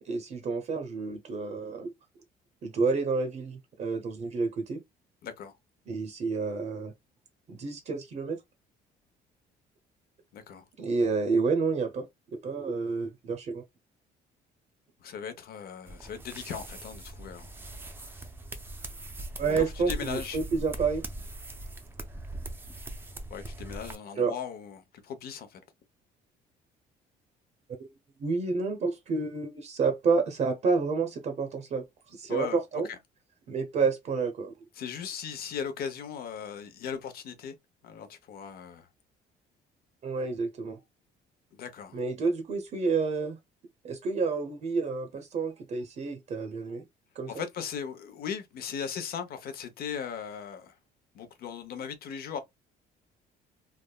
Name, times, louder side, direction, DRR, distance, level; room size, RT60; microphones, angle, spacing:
voice 1, 0.0-1.9 2.6-4.8 5.9-6.9 7.5-8.4 10.8-12.1 12.3-13.6 19.4-21.0 24.2-24.4 28.2-32.9 33.5-34.5 40.0-40.8 41.9-43.4 43.8-46.8 47.1-47.4, right 4 dB, 45° right, 0.7 m, -29 dB
voice 2, 5.2-5.6 10.3-10.6 15.0-17.6 19.5-20.4 23.3-25.6 32.3-32.6 34.8-37.5 37.8-38.9 41.5-42.0 47.3-50.8 51.1-52.4, left 7 dB, 65° left, 0.8 m, -38 dB
sound 1, 15.9-23.9, right 1 dB, 15° right, 0.5 m, -41 dB
3.4 x 2.0 x 2.2 m
cardioid pair, 110°, 17 cm